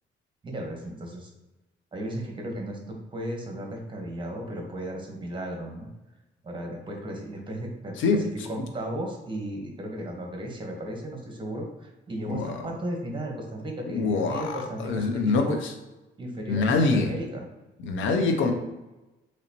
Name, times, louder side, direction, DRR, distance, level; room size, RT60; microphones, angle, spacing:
voice 1, 0.4-1.3 1.9-5.9 6.4-15.6 16.2-17.5 18.2-18.3, right 1 dB, 25° right, 1 dB, 1.1 m, -35 dB
voice 2, 12.3-12.6 13.9-15.7 16.5-17.1 17.8-18.5, left 3 dB, 75° left, 6 dB, 0.6 m, -25 dB
3.9 x 3.1 x 2.9 m, 1.1 s
cardioid pair, 90°, 20 cm